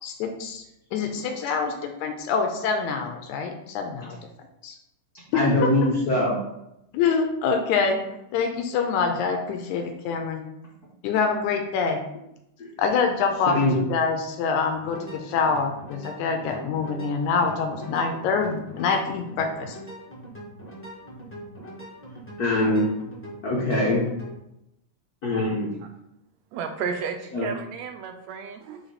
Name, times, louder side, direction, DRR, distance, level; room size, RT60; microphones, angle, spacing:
voice 1, 0.0-0.6 0.9-4.2 4.6-4.8 5.3-5.4 6.9-8.0 8.3-10.4 11.0-12.0 12.8-19.8, left 5 dB, 85° left, 4 dB, 2.0 m, -25 dB
voice 2, 5.3-6.4 13.5-13.7 22.4-22.9 23.4-24.0 25.2-25.7 27.3-27.5, left 1 dB, 65° left, -5 dB, 0.9 m, -22 dB
sound 1, 14.7-24.3, right 1 dB, 10° left, 0.7 m, -42 dB
voice 3, 26.5-28.8, right 6 dB, 80° right, 6 dB, 1.7 m, -32 dB
7.2 x 3.3 x 4.1 m, 0.84 s
omnidirectional pair, 3.4 m